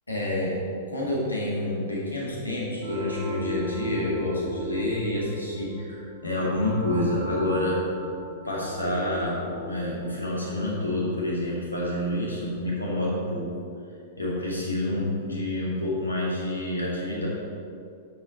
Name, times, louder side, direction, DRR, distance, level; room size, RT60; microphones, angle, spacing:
voice 1, 0.1-0.6 0.9-7.8 8.4-13.5 14.2-17.3, left 1 dB, 85° left, -4 dB, 2.2 m, -28 dB
sound 1, 2.8-13.2, equal, 55° right, 1.8 m, -38 dB
9.2 x 6.2 x 4.1 m, 2.5 s
figure-of-eight pair, 100°, 0 cm